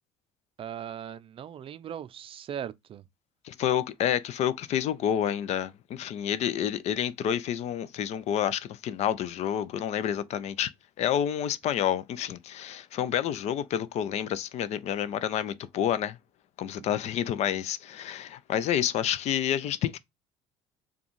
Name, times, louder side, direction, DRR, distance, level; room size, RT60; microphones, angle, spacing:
voice 1, 0.6-3.1 16.8-16.9, right 9 dB, 40° right, 0.5 m, -39 dB
voice 2, 3.4-10.7 11.0-16.2 16.6-20.0, left 10 dB, 50° left, 0.5 m, -29 dB
6.9 x 2.4 x 3.0 m
hypercardioid pair, 60°, 14 cm